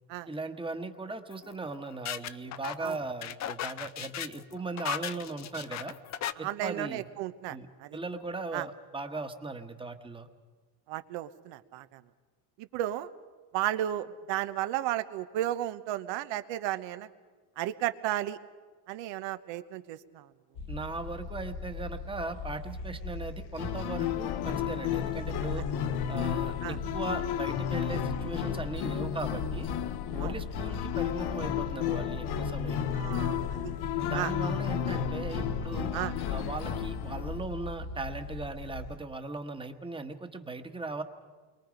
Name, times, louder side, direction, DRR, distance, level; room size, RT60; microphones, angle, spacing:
voice 1, 0.3-6.0 6.4-7.1 7.5-10.3 20.7-25.7 26.1-29.7 30.1-32.8 34.1-35.9 36.3-41.0, right 3 dB, 10° right, 7 dB, 1.3 m, -38 dB
sound 1, 1.3-6.3, left 11 dB, 35° left, 0.6 m, -37 dB
voice 2, 6.4-8.0 8.5-8.7 10.9-12.0 12.6-13.1 13.5-17.1 17.6-18.4 18.9-20.3 26.6-26.8 30.2-30.3 32.9-33.7 34.1-34.3 35.9-36.1, right 13 dB, 70° right, 12 dB, 1.2 m, -34 dB
sound 2, 20.5-39.0, left 3 dB, 75° left, 1.5 m, -40 dB
sound 3, 23.6-37.5, left 9 dB, 55° left, 1.1 m, -32 dB
28.5 x 22.5 x 5.2 m, 1.4 s
cardioid pair, 130°, 46 cm